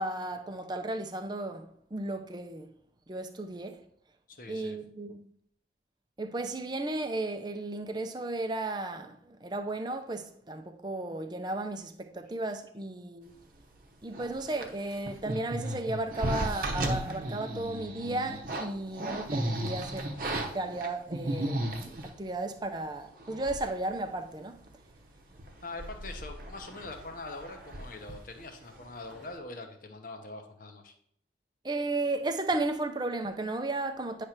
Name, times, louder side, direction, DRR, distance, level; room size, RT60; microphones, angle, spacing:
voice 1, 0.0-2.7 3.1-3.8 4.5-5.3 6.2-13.4 14.0-24.6 31.6-34.3, right 2 dB, 25° right, 0.6 m, -34 dB
voice 2, 4.3-4.8 25.6-30.9, left 2 dB, 50° left, 1.0 m, -43 dB
sound 1, 14.1-22.2 22.8-22.9 23.2-23.8 24.1-24.2 24.6-25.0 25.3-28.8 29.1-29.4, right 1 dB, 50° right, 0.9 m, -35 dB
9.3 x 3.3 x 5.9 m
head